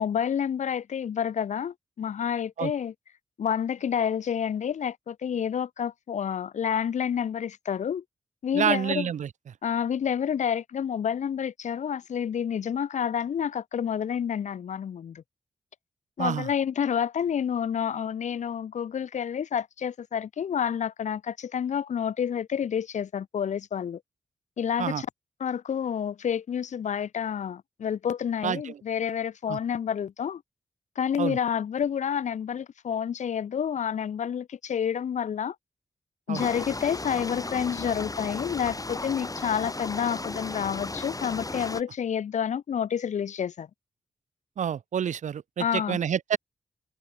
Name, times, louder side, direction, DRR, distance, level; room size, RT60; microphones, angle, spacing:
voice 1, 0.0-2.9 3.4-8.0 8.4-9.1 9.6-15.2 16.2-24.0 24.6-25.1 25.4-30.4 31.0-35.6 36.3-43.7 45.6-46.0, left 8 dB, 80° left, 2.3 m, -29 dB
voice 2, 8.5-9.3 16.2-16.5 24.8-25.0 28.4-28.8 29.5-29.6 31.2-31.4 36.3-36.4 44.6-46.4, right 8 dB, 80° right, 5.5 m, -28 dB
Midnight summer rain, 36.3-41.8, left 2 dB, 30° left, 5.5 m, -35 dB
supercardioid pair, 45°, 12 cm